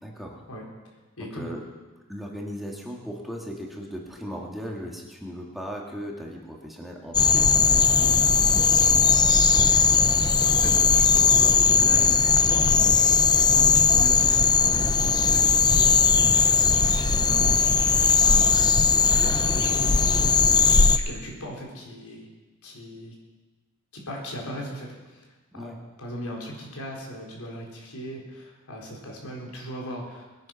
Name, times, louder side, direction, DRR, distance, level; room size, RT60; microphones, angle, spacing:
voice 1, 0.0-0.4 1.2-1.6 2.1-9.1 10.6-10.8 18.2-18.5 25.5-25.8, equal, ahead, -2 dB, 2.0 m, -38 dB
voice 2, 1.2-1.5 9.5-12.9 13.4-18.7 19.0-22.3 22.6-23.2 23.9-25.3 25.5-25.7 26.0-30.3, equal, 90° left, -2 dB, 4.3 m, -38 dB
sound 1, 7.1-21.0, left 5 dB, 20° left, 0.6 m, -19 dB
21.0 x 9.6 x 5.9 m, 1.2 s
head